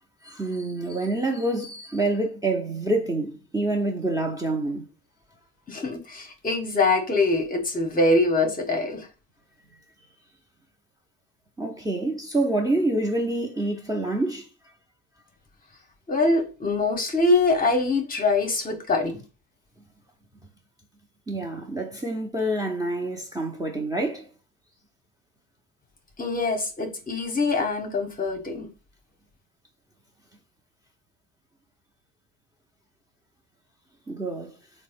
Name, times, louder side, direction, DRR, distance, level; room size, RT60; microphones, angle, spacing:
voice 1, 0.2-4.9 11.6-14.5 21.3-24.3 34.1-34.5, right 2 dB, 10° right, 0.7 m, -27 dB
voice 2, 5.7-9.1 16.1-19.2 26.2-28.7, left 2 dB, 25° left, 0.9 m, -24 dB
3.5 x 2.1 x 3.5 m
supercardioid pair, 85°, 34 cm